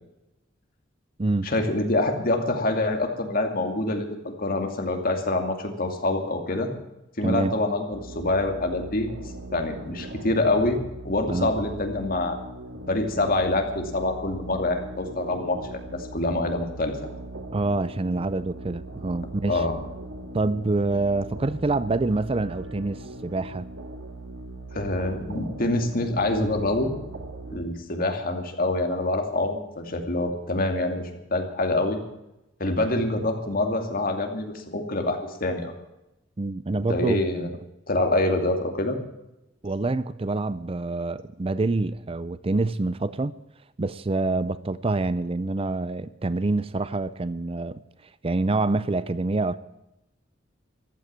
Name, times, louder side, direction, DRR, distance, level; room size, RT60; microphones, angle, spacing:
voice 1, 1.4-6.7 7.2-9.1 9.5-10.8 11.0-12.4 12.9-17.1 19.5-19.8 24.7-26.9 27.5-32.0 32.6-35.7 36.9-37.5 37.9-39.0, left 2 dB, 50° left, 2.6 m, -26 dB
voice 2, 7.2-7.5 11.3-11.5 17.5-19.6 20.3-23.7 36.4-37.5 39.6-43.3 43.8-47.8 48.2-49.6, right 2 dB, 30° right, 0.5 m, -26 dB
sound 1, 7.9-27.6, right 1 dB, 90° right, 2.1 m, -39 dB
15.0 x 12.0 x 7.5 m
head